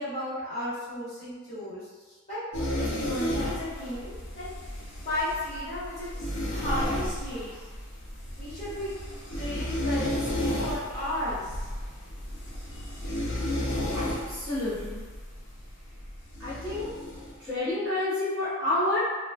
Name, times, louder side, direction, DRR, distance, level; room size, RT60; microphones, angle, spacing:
voice 1, 0.0-2.4 2.8-4.5 5.0-7.6 8.4-8.9 9.3-11.6, left 1 dB, 30° left, -13 dB, 1.3 m, -34 dB
sound 1, 2.5-17.4, left 1 dB, 85° left, 0.7 m, -33 dB
voice 2, 13.9-15.0 16.4-16.9 17.4-19.0, left 2 dB, 10° left, -18 dB, 1.0 m, -29 dB
3.0 x 2.2 x 2.4 m, 1.4 s
head